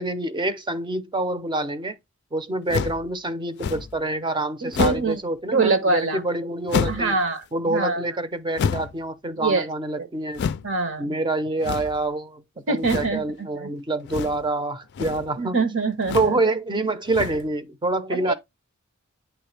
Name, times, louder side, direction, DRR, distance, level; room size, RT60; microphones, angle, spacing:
voice 1, 0.0-2.0 2.3-7.2 7.5-10.4 11.0-15.6 16.1-18.3, right 2 dB, 20° right, 0.7 m, -26 dB
sound 1, 2.7-3.1 3.6-4.0 4.7-5.2 6.7-7.1 8.6-9.0 10.3-10.7 11.6-12.0 12.8-13.2 14.1-14.5 14.8-15.3 16.0-16.4 17.1-17.5, left 6 dB, 55° left, 0.3 m, -28 dB
voice 2, 4.6-5.2 5.5-6.2 6.9-7.4 7.7-8.0 9.4-9.7 10.0-10.1 10.6-11.1 12.7-13.2 13.6-13.7 15.4-16.3 18.1-18.3, right 3 dB, 70° right, 1.1 m, -24 dB
8.8 x 3.2 x 3.3 m
head